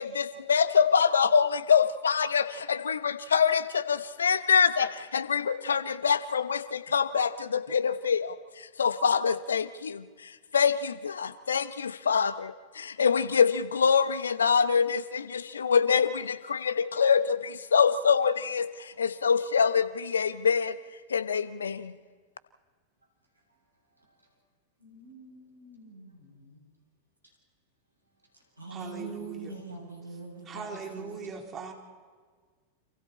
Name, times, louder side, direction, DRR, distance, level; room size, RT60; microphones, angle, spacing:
voice 1, 0.0-20.8 21.1-21.9, left 6 dB, 70° left, 14 dB, 1.0 m, -25 dB
voice 2, 24.8-26.6 28.6-30.7 30.9-31.2, right 3 dB, 85° right, 0 dB, 7.4 m, -43 dB
voice 3, 28.7-29.6 30.5-31.7, right 5 dB, 25° right, 2 dB, 3.9 m, -40 dB
29.5 x 27.0 x 4.4 m, 1.5 s
figure-of-eight pair, 90°, 0 cm